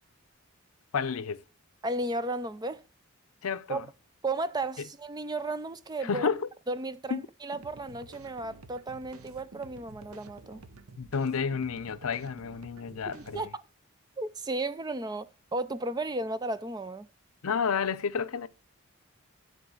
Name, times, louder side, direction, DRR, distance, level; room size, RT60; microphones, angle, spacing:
voice 1, 0.9-1.4 3.4-3.8 6.0-6.5 7.1-7.2 11.0-13.5 17.4-18.5, left 6 dB, 75° left, 0.6 m, -30 dB
voice 2, 1.8-2.8 3.7-3.8 4.2-6.3 6.7-10.6 13.1-13.6 14.2-17.1, right 2 dB, 20° right, 0.4 m, -34 dB
sound 1, 7.5-13.5, right 3 dB, 80° right, 0.9 m, -51 dB
11.0 x 4.0 x 6.4 m
head